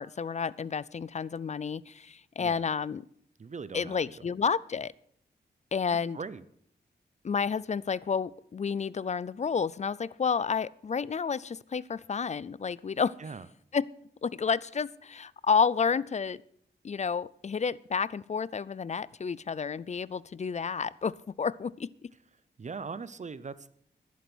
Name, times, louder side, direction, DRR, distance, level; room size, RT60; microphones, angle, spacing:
voice 1, 0.0-3.1 3.7-4.9 5.7-6.2 7.2-13.1 13.7-13.8 14.2-16.4 16.8-22.1, left 6 dB, 40° left, 21 dB, 0.4 m, -30 dB
voice 2, 3.4-4.2 6.1-6.4 13.2-13.5 22.6-23.7, right 5 dB, 40° right, 16 dB, 0.7 m, -40 dB
11.5 x 11.0 x 6.2 m, 0.66 s
wide cardioid pair, 95°, 18 cm